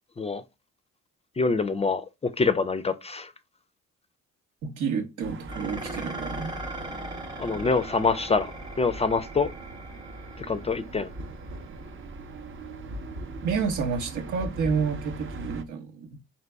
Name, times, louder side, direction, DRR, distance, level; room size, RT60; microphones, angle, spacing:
voice 1, 1.4-3.3 7.4-8.5 8.8-9.5 10.4-11.1, left 4 dB, 20° left, 0.4 m, -25 dB
voice 2, 4.6-6.6 13.4-16.2, right 5 dB, 80° right, 1.0 m, -29 dB
sound 1, 5.2-15.6, right 1 dB, 45° right, 0.7 m, -40 dB
Dishes pots and pans, 5.5-14.3, right 2 dB, 15° right, 0.8 m, -41 dB
3.9 x 2.9 x 3.4 m
cardioid pair, 90°, 30 cm